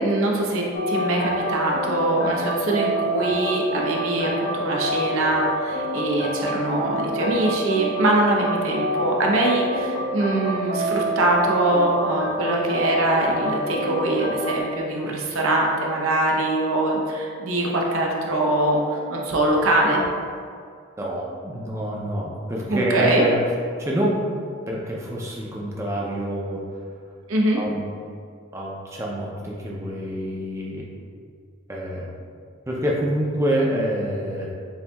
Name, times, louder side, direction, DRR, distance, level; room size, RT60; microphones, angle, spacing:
voice 1, 0.0-20.0 22.7-23.2 27.3-27.6, right 1 dB, 90° right, -1 dB, 0.7 m, -23 dB
sound 1, 0.7-14.6, equal, 75° left, 0.6 m, -27 dB
voice 2, 21.0-23.4 23.8-24.2 24.7-26.6 27.6-27.9 28.5-30.8 31.7-32.1 32.7-34.5, right 1 dB, 15° right, -4 dB, 0.4 m, -26 dB
6.9 x 2.7 x 2.2 m, 2.2 s
head